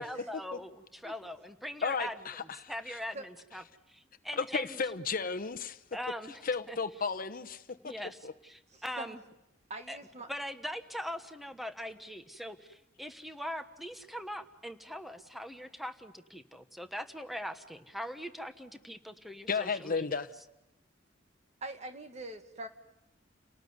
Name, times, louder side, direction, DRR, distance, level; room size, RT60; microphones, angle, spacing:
voice 1, 0.0-2.2 2.7-4.8 5.9-6.8 7.8-9.2 9.9-10.0 10.3-20.2, equal, ahead, 8 dB, 1.3 m, -41 dB
voice 2, 1.8-2.7 4.4-5.8 6.4-7.9 8.2-8.3 19.5-20.3, left 5 dB, 50° left, 10 dB, 1.0 m, -33 dB
voice 3, 8.7-9.2 9.7-10.3 21.6-22.7, right 2 dB, 35° right, 6 dB, 2.0 m, -43 dB
30.0 x 19.0 x 9.5 m, 0.90 s
head